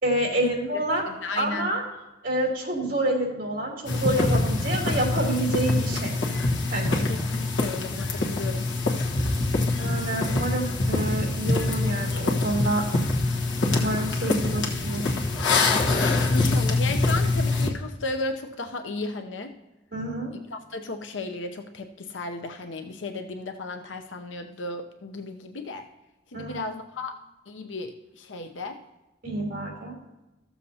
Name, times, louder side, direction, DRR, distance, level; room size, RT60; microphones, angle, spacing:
voice 1, 0.0-1.0 1.3-1.8 2.2-6.2 6.7-7.0 9.8-12.9 13.8-15.0 19.9-20.3 26.3-26.6 29.2-30.0, right 1 dB, 50° right, -2 dB, 3.0 m, -28 dB
voice 2, 1.1-1.7 7.0-8.7 16.3-19.5 20.5-25.9 26.3-27.2 27.5-28.8, left 2 dB, 90° left, 5 dB, 0.7 m, -34 dB
sound 1, 3.9-17.7, left 2 dB, 70° left, 1.3 m, -25 dB
14.5 x 7.1 x 2.8 m, 1.0 s
head